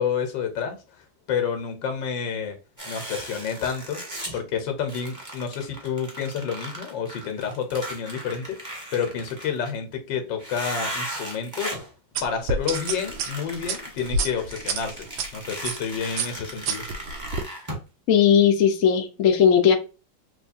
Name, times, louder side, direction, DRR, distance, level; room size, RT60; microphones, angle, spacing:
voice 1, 0.0-2.6 2.8-4.0 4.3-8.6 8.9-11.8 12.2-15.1 15.3-16.8, left 7 dB, 80° left, 1.6 m, -29 dB
sound 1, 2.8-4.4 4.9-9.8 10.4-11.9 12.6-17.8, right 1 dB, 10° right, 1.2 m, -37 dB
sound 2, 12.2-15.3 15.6-15.9 16.2-17.4, right 4 dB, 85° right, 1.3 m, -28 dB
voice 2, 18.1-19.7, left 8 dB, 60° left, 0.9 m, -17 dB
3.5 x 3.1 x 2.6 m
omnidirectional pair, 2.0 m